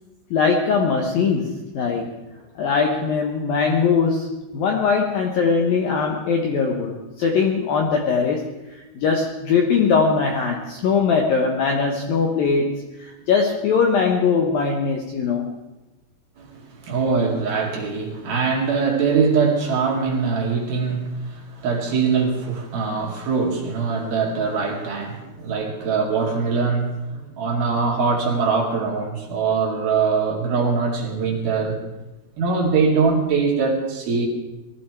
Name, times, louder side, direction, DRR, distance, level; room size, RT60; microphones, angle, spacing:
voice 1, 0.3-2.2 2.6-8.5 9.0-12.7 13.0-15.5, left 5 dB, 70° left, 2 dB, 2.2 m, -21 dB
voice 2, 16.4-31.8 32.4-34.3, right 5 dB, 55° right, 0 dB, 3.5 m, -22 dB
20.0 x 14.5 x 4.7 m, 1.1 s
omnidirectional pair, 5.8 m